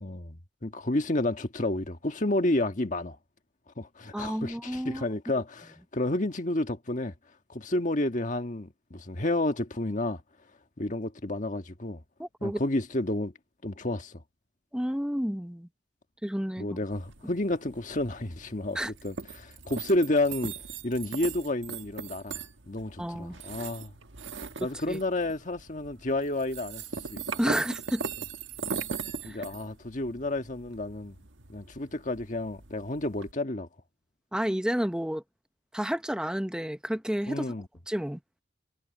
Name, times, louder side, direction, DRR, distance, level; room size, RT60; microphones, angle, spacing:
voice 1, 0.0-3.2 3.8-7.1 7.5-10.2 10.8-12.0 12.4-13.3 13.6-14.2 16.6-20.5 20.8-23.9 24.6-26.8 27.1-27.2 29.2-31.2 31.5-33.7 37.3-37.7, left 1 dB, 40° left, 1.5 m, -30 dB
voice 2, 4.1-5.0 12.2-12.6 14.7-15.7 16.2-16.7 18.7-18.9 23.0-23.4 24.6-25.0 27.4-28.0 29.2-29.4 34.3-35.2 35.7-37.4 37.9-38.2, equal, 5° right, 0.7 m, -30 dB
sound 1, 16.9-33.3, right 5 dB, 85° right, 1.4 m, -40 dB
head